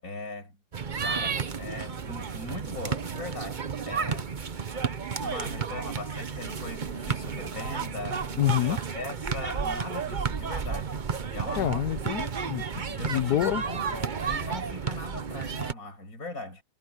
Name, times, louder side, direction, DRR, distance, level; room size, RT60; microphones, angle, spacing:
voice 1, 0.0-0.6 1.0-4.3 5.2-11.0 11.3-11.9 13.0-16.6, left 2 dB, 55° left, 7.9 m, -39 dB
sound 1, 0.7-15.7, right 6 dB, 35° right, 0.8 m, -32 dB
voice 2, 8.4-8.8 11.6-13.6, left 13 dB, 70° left, 1.2 m, -27 dB
omnidirectional pair, 1.8 m